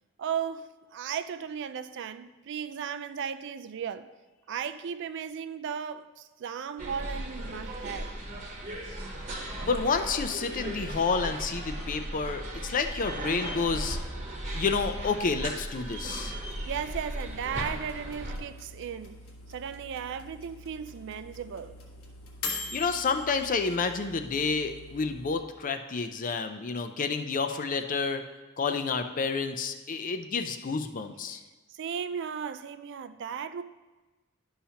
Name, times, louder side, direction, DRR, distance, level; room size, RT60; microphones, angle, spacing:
voice 1, 0.2-4.1 4.5-8.1 16.7-19.2 19.5-21.8 31.3-31.4 31.7-33.6, right 7 dB, 60° right, 0.4 m, -36 dB
sound 1, 6.8-18.4, right 1 dB, 35° right, 1.1 m, -37 dB
voice 2, 9.6-14.0 14.5-16.3 22.7-28.2 28.6-31.4, left 4 dB, 40° left, 0.5 m, -29 dB
sound 2, 16.3-25.4, left 3 dB, 85° left, 1.2 m, -43 dB
11.5 x 5.7 x 2.8 m
head